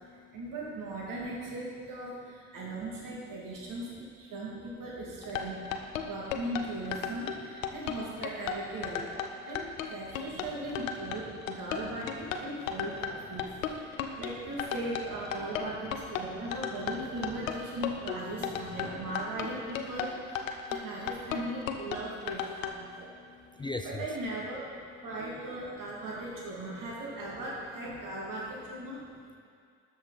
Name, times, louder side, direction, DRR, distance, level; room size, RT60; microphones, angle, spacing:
voice 1, 0.3-5.6 6.0-23.1 23.6-24.6 25.0-29.3, right 1 dB, 55° right, -5 dB, 2.2 m, -38 dB
sound 1, 5.2-22.7, left 8 dB, 85° left, 0.6 m, -35 dB
voice 2, 13.9-14.2 22.8-24.1, left 3 dB, 15° left, 4 dB, 0.5 m, -41 dB
12.5 x 5.9 x 4.0 m, 2.2 s
hypercardioid pair, 50°, 38 cm